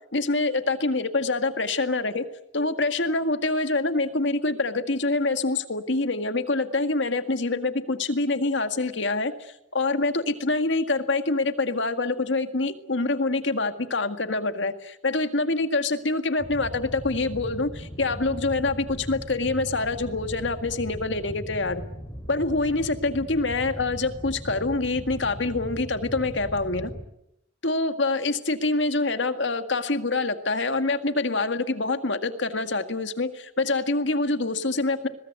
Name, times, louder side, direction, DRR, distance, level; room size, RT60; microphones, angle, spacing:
voice 1, 0.1-2.2 2.5-21.8 22.3-26.9 27.6-35.1, left 3 dB, 75° left, 8 dB, 2.0 m, -26 dB
sound 1, 16.4-27.1, equal, 20° left, 3.4 m, -38 dB
22.5 x 21.0 x 9.5 m, 0.81 s
head